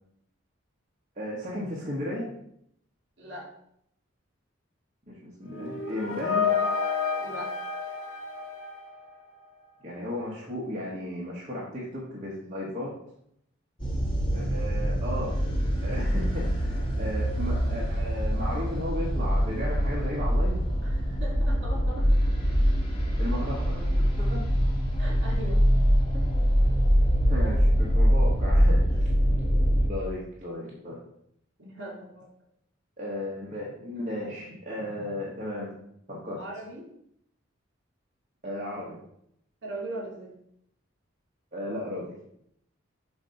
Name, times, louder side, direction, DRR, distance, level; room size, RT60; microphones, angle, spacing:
voice 1, 1.2-2.3 5.1-6.5 9.8-12.9 14.3-15.4 15.8-20.6 23.2-24.4 27.3-29.1 29.9-31.0 33.0-35.7 36.1-36.4 38.4-39.0 41.5-42.1, left 1 dB, 35° right, -6 dB, 1.2 m, -35 dB
sound 1, 5.5-9.4, left 5 dB, 80° left, 1.0 m, -30 dB
voice 2, 7.2-7.5 20.8-22.1 25.0-25.6 26.1-26.3 29.9-30.1 31.6-32.3 36.4-36.9 39.6-40.3, right 1 dB, 60° right, -2 dB, 2.4 m, -39 dB
sound 2, 13.8-29.9, equal, 25° left, 1.2 m, -24 dB
6.9 x 2.7 x 5.6 m, 0.73 s
head